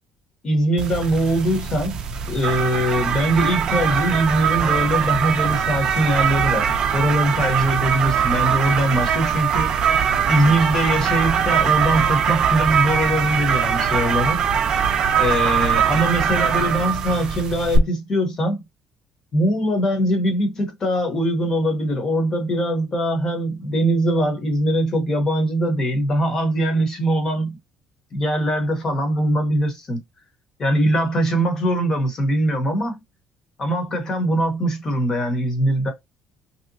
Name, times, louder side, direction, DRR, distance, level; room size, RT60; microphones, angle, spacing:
voice 1, 0.4-9.9 10.3-14.4 15.2-18.6 19.3-27.6 28.1-30.0 30.6-33.0 33.6-35.9, right 1 dB, 25° left, 0.9 m, -22 dB
sound 1, 0.8-17.8, right 7 dB, 35° right, 0.5 m, -21 dB
3.2 x 2.8 x 2.7 m
cardioid pair, 180°, 2 cm